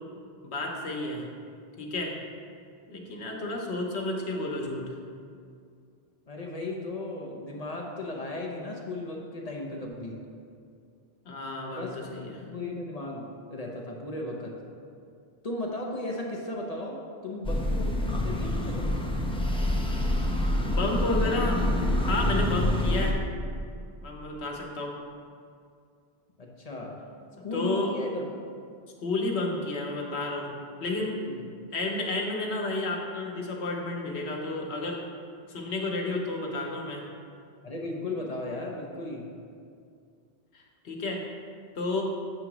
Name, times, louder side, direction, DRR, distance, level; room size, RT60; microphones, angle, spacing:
voice 1, 0.4-1.2 1.8-2.1 2.9-4.9 11.3-12.3 20.6-21.6 22.1-23.2 24.0-24.9 27.5-27.9 29.0-30.5 30.8-31.2 31.7-35.0 35.5-37.0 40.5-41.2 41.8-42.0, left 2 dB, 90° left, 0 dB, 1.2 m, -31 dB
voice 2, 6.3-10.2 11.7-12.0 12.4-14.6 15.4-19.0 26.4-27.0 27.4-28.2 31.2-31.4 37.6-39.3, left 2 dB, 40° left, 0 dB, 0.7 m, -36 dB
sound 1, 17.4-23.1, left 1 dB, 10° left, 0.3 m, -26 dB
7.6 x 2.9 x 5.9 m, 2.3 s
omnidirectional pair, 1.1 m